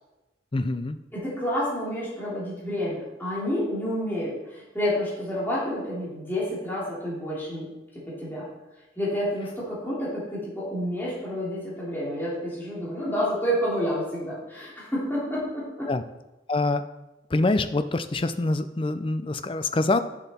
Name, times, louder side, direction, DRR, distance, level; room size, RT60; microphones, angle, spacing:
voice 1, 0.5-1.0 15.9-16.0 16.5-16.8 17.3-20.0, left 2 dB, 25° left, 11 dB, 0.4 m, -25 dB
voice 2, 1.1-7.7 7.9-8.5 9.0-15.9, equal, 10° left, -8 dB, 2.8 m, -29 dB
9.2 x 6.9 x 4.2 m, 1.0 s
head